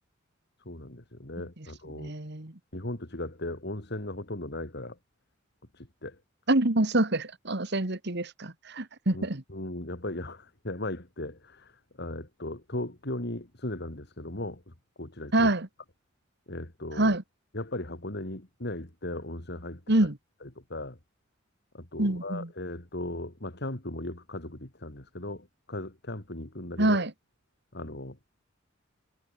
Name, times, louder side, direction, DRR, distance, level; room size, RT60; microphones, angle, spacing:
voice 1, 0.7-2.1 2.7-5.0 5.7-6.2 9.1-14.7 15.0-15.5 16.5-17.2 17.5-19.8 20.4-21.0 21.7-27.0 27.7-28.2, left 1 dB, 55° left, 3.5 m, -37 dB
voice 2, 1.9-2.5 6.5-9.4 15.3-15.7 17.0-17.2 19.9-20.2 22.0-22.5 26.8-27.1, right 2 dB, 55° right, 2.2 m, -26 dB
head